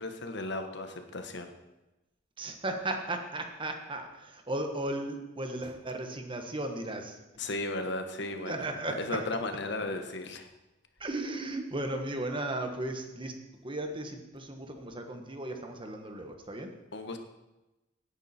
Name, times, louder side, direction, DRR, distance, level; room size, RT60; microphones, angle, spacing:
voice 1, 0.0-1.5 7.4-8.5 9.0-10.5 16.9-17.2, left 2 dB, 65° left, 6 dB, 1.3 m, -35 dB
voice 2, 2.4-7.2 8.4-9.3 11.0-13.3 13.6-16.7, right 1 dB, 25° right, 5 dB, 1.4 m, -35 dB
17.0 x 9.2 x 4.4 m, 1.0 s
head